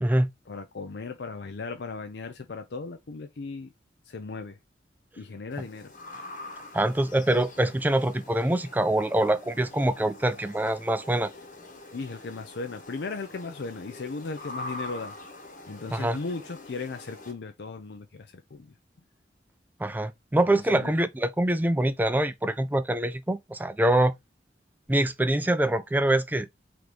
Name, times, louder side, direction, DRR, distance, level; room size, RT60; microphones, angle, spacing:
voice 1, 0.5-3.7 4.1-4.6 5.2-5.9 11.9-15.2 15.7-18.7 20.5-20.9, left 4 dB, 70° left, 0.5 m, -37 dB
sound 1, 5.5-17.3, left 2 dB, 50° left, 1.1 m, -44 dB
voice 2, 6.7-11.3 15.9-16.2 19.8-24.1 24.9-26.5, right 1 dB, 10° right, 0.4 m, -24 dB
3.8 x 3.0 x 3.3 m
head